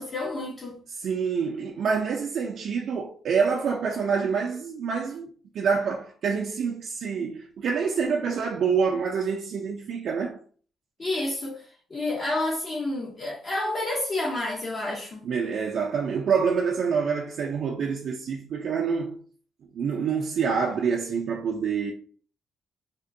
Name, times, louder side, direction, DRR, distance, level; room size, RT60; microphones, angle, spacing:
voice 1, 0.0-0.8 11.0-11.6 11.9-15.3, left 2 dB, 40° left, 0.6 m, -29 dB
voice 2, 0.9-5.3 5.5-10.4 15.2-19.2 19.7-21.9, right 6 dB, 65° right, 0.4 m, -26 dB
3.5 x 2.1 x 2.5 m
cardioid pair, 95°, 0 cm